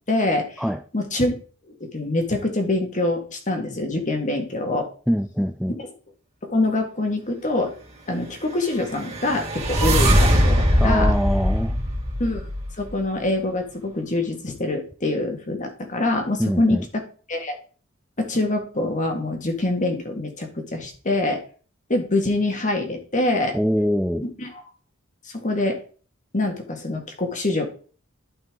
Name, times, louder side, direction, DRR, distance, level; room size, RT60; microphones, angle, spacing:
voice 1, 0.1-0.6 0.9-1.3 1.8-4.9 6.4-7.7 8.1-11.1 12.2-12.5 12.8-17.0 17.3-17.6 18.2-21.4 21.9-23.6 24.4-24.6 25.3-25.8 26.3-27.7, left 2 dB, 40° left, 1.9 m, -25 dB
voice 2, 5.1-5.7 10.8-11.8 16.4-16.8 23.5-24.3, equal, ahead, 0.4 m, -23 dB
sound 1, 8.8-12.9, equal, 35° right, 2.6 m, -21 dB
11.5 x 5.6 x 3.8 m
head